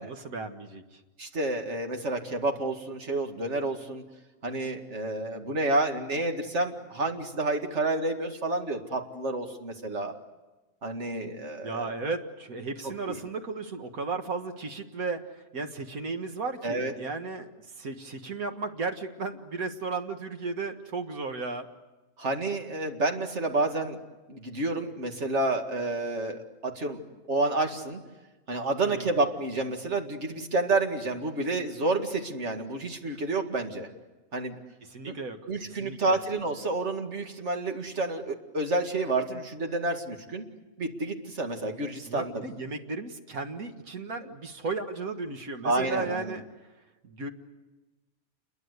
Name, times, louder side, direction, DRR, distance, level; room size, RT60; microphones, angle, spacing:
voice 1, 0.0-1.0 11.6-17.5 17.8-21.7 28.8-29.1 34.8-35.4 35.6-36.2 42.1-46.4 47.0-47.3, right 3 dB, 75° right, 5 dB, 2.1 m, -35 dB
voice 2, 1.2-4.0 4.4-10.1 10.8-11.9 13.1-13.2 16.6-16.9 22.2-24.0 24.3-27.0 27.3-28.0 28.5-33.9 34.3-34.5 35.5-40.4 40.8-42.4 45.6-46.3, right 2 dB, 50° right, 4 dB, 2.3 m, -29 dB
28.5 x 22.5 x 8.2 m, 1.1 s
omnidirectional pair, 1.5 m